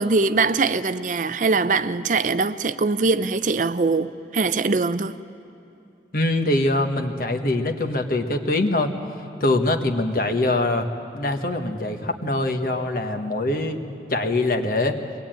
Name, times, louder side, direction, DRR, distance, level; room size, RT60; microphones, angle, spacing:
voice 1, 0.0-5.1, right 4 dB, 45° right, 0.5 m, -22 dB
voice 2, 6.1-10.9 11.1-13.8 14.1-15.0, left 2 dB, 55° left, 1.4 m, -23 dB
22.5 x 20.5 x 9.0 m
head